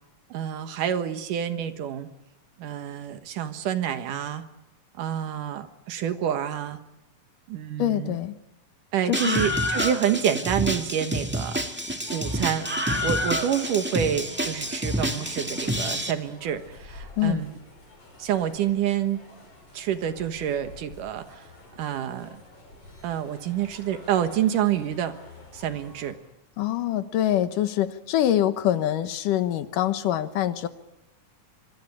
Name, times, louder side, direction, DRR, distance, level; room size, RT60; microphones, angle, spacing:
voice 1, 0.3-2.1 2.6-4.4 5.0-6.8 7.5-8.2 8.9-11.6 12.1-17.5 18.2-19.2 19.7-21.4 21.8-22.4 23.0-25.2 25.5-26.2, right 10 dB, 75° right, 9 dB, 2.9 m, -28 dB
voice 2, 7.8-8.4 9.1-9.4 17.2-17.4 26.6-30.7, left 12 dB, 80° left, 11 dB, 2.7 m, -24 dB
Screaming, 9.1-16.1, equal, 15° right, 0.4 m, -28 dB
sound 1, 12.1-26.1, left 2 dB, 45° left, 6.8 m, -48 dB
26.0 x 23.0 x 8.6 m, 0.94 s
omnidirectional pair, 3.8 m